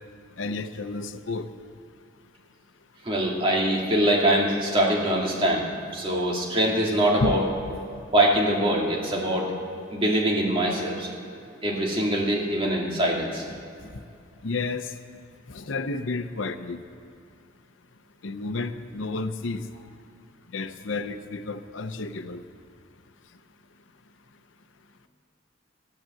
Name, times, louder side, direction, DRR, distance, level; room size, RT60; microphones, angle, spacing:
voice 1, 0.4-1.4 7.2-7.3 13.5-13.6 14.4-14.9 15.5-16.8 18.2-19.6 20.5-22.4, left 3 dB, 85° left, 10 dB, 0.7 m, -31 dB
voice 2, 3.0-5.7 5.9-7.4 8.1-9.5 9.9-11.1 11.6-13.4, right 1 dB, 30° right, -2 dB, 2.3 m, -23 dB
15.5 x 11.0 x 7.8 m, 2.5 s
head